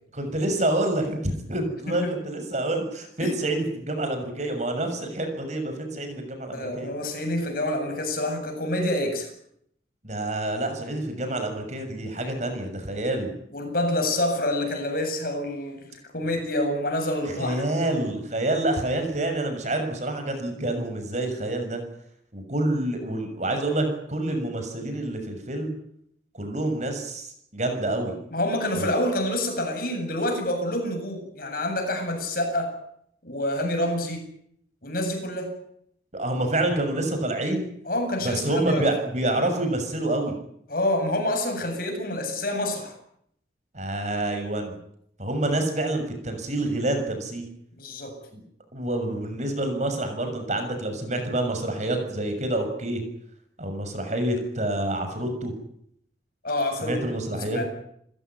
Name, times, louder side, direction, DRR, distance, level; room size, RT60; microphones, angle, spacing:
voice 1, 0.1-6.9 10.0-13.3 17.2-21.8 22.3-25.8 26.3-28.1 28.7-28.9 36.1-37.7 38.2-40.4 43.7-44.7 45.2-47.4 48.3-48.4 48.7-53.0 53.6-55.5 56.8-57.7, right 1 dB, 40° right, 6 dB, 6.6 m, -27 dB
voice 2, 6.5-9.3 13.5-17.6 28.3-32.7 33.2-34.3 34.8-35.5 37.9-38.9 40.7-42.9 47.8-48.2 56.4-56.9 57.4-57.7, left 1 dB, 50° left, 4 dB, 8.0 m, -27 dB
29.5 x 16.0 x 9.5 m, 0.71 s
head